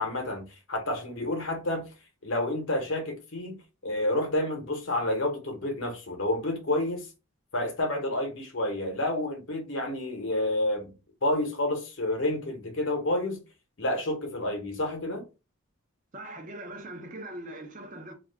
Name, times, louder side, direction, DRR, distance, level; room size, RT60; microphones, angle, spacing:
voice 1, 0.0-1.9 2.2-3.6 3.8-7.0 7.5-10.9 11.2-13.4 13.8-15.2, left 1 dB, 65° left, 0.8 m, -29 dB
voice 2, 16.1-18.1, right 1 dB, 35° right, 0.6 m, -41 dB
2.4 x 2.3 x 3.4 m
head